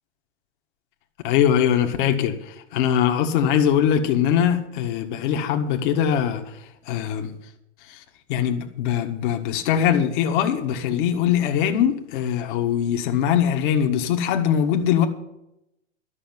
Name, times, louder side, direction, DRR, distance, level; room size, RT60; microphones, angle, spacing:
voice 1, 1.2-6.4 6.9-7.3 7.9-8.0 8.3-15.1, left 9 dB, 45° left, 1.6 m, -22 dB
12.0 x 6.4 x 9.5 m
hypercardioid pair, 115°, 35 cm